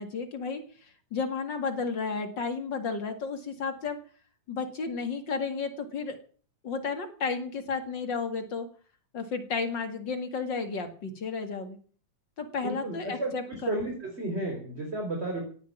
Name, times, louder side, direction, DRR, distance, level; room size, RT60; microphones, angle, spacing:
voice 1, 0.0-4.0 4.5-6.2 6.6-8.7 9.1-11.8 12.4-13.8, left 4 dB, 40° left, 7 dB, 2.1 m, -33 dB
voice 2, 12.6-15.4, right 2 dB, 15° right, 1 dB, 4.3 m, -33 dB
17.0 x 8.2 x 9.3 m, 0.44 s
omnidirectional pair, 4.1 m